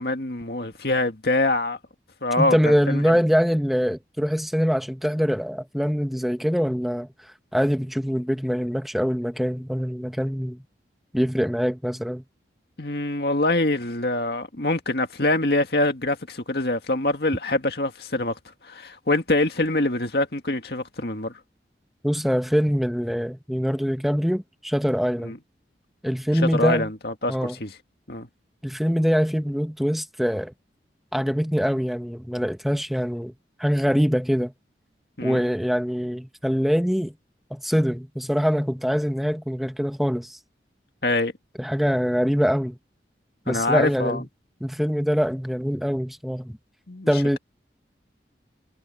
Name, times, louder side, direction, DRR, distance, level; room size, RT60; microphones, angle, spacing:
voice 1, 0.0-1.8 2.2-3.0 12.8-21.4 25.2-25.4 26.3-27.7 28.1-28.3 35.2-35.4 41.0-41.3 43.5-44.2 46.9-47.4, left 2 dB, 60° left, 2.1 m, -25 dB
voice 2, 2.4-7.1 7.5-10.6 11.1-12.2 22.0-25.3 26.0-26.9 27.3-27.5 28.6-30.5 31.1-33.3 33.6-34.5 35.2-37.1 37.5-40.4 41.6-42.8 43.5-44.2 44.6-46.6 47.1-47.4, equal, ahead, 1.1 m, -24 dB
head